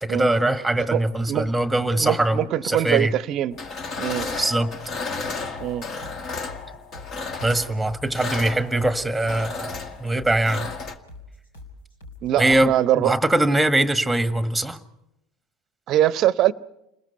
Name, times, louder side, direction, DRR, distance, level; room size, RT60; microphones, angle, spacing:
voice 1, 0.0-3.1 4.4-4.7 7.4-10.7 12.4-14.8, right 1 dB, 5° right, 1.5 m, -22 dB
voice 2, 2.0-3.6 4.0-4.3 5.6-5.9 12.2-13.1 15.9-16.5, right 12 dB, 45° right, 0.7 m, -22 dB
sound 1, 3.5-11.0, left 4 dB, 40° left, 1.9 m, -33 dB
sound 2, 5.5-12.8, left 2 dB, 75° left, 4.2 m, -44 dB
29.5 x 21.0 x 5.6 m
figure-of-eight pair, 70°, 0 cm